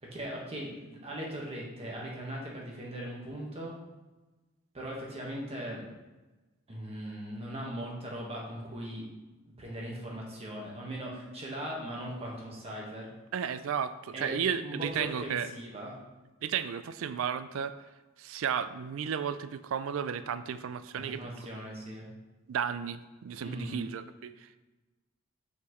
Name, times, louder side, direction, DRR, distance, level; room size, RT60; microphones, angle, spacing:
voice 1, 0.0-3.7 4.7-5.8 6.7-9.1 9.6-13.1 14.1-16.0 20.9-22.1 23.4-23.8, right 1 dB, 30° right, -2 dB, 1.4 m, -39 dB
voice 2, 13.3-15.5 16.4-17.7 18.2-21.5 22.5-24.6, right 7 dB, 70° right, 13 dB, 0.3 m, -33 dB
5.8 x 5.8 x 3.1 m, 1.1 s
head